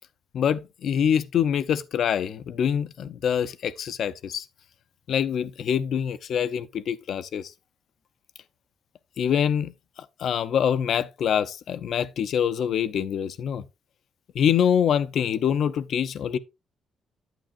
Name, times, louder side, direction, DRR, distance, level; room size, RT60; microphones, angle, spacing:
voice 1, 0.3-4.5 5.1-7.5 9.2-9.7 10.2-13.6 14.3-16.4, left 8 dB, 65° left, 0.7 m, -25 dB
9.1 x 9.1 x 2.5 m
cardioid pair, 90°, 0 cm